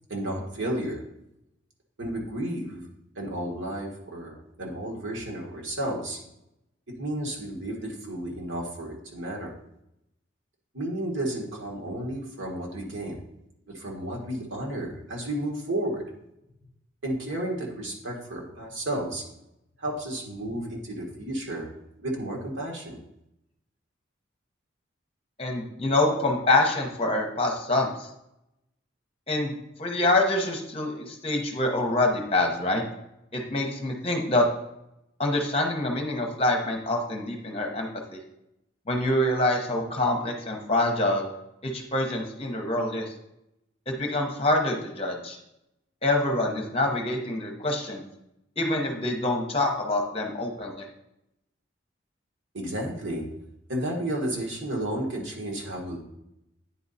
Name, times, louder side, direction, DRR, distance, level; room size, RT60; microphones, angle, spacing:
voice 1, 0.1-1.0 2.0-2.8 3.1-6.2 7.0-9.5 10.7-13.2 13.7-16.0 17.0-19.2 19.8-21.7 22.0-23.0 52.5-53.3 53.7-56.0, right 1 dB, 80° right, -1 dB, 1.6 m, -32 dB
voice 2, 25.4-28.1 29.3-29.5 29.8-32.8 33.3-34.4 35.2-38.2 38.9-41.3 41.6-43.1 43.9-45.4 46.0-48.0 48.6-50.9, left 2 dB, 30° left, 1 dB, 0.9 m, -26 dB
9.3 x 3.8 x 4.1 m, 0.84 s
head